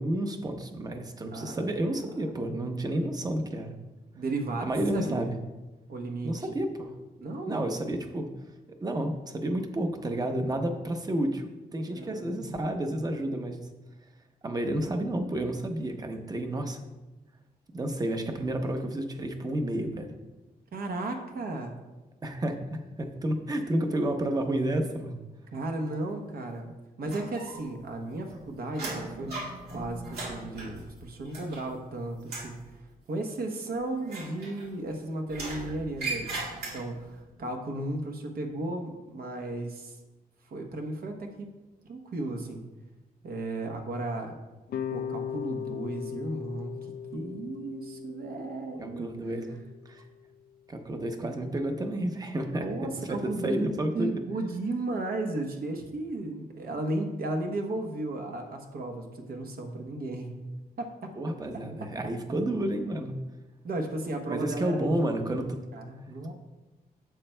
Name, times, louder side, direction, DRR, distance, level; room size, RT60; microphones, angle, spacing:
voice 1, 0.0-3.7 4.6-5.3 6.2-6.9 7.5-8.3 8.8-13.6 14.4-16.8 17.7-20.1 22.2-25.2 48.8-49.6 49.9-50.0 50.7-52.6 53.1-54.2 61.2-63.2 64.3-65.6, right 1 dB, 25° right, 5 dB, 0.7 m, -30 dB
voice 2, 1.3-1.6 4.1-5.3 5.9-6.5 7.2-7.7 11.8-12.6 20.7-21.7 25.5-26.7 27.0-36.4 36.7-40.0 40.4-41.5 41.9-42.6 43.2-44.3 44.9-46.7 47.1-49.1 52.5-60.4 60.8-61.1 63.6-65.0 65.7-66.3, right 2 dB, 70° right, 3 dB, 0.9 m, -34 dB
sound 1, 27.1-27.8 28.1-31.9 32.2-32.6 34.0-34.9 35.3-37.1, right 2 dB, 85° right, 2.0 m, -38 dB
sound 2, 44.7-49.8, left 8 dB, 70° left, 0.4 m, -38 dB
11.5 x 7.5 x 2.2 m, 1.1 s
wide cardioid pair, 165°, 16 cm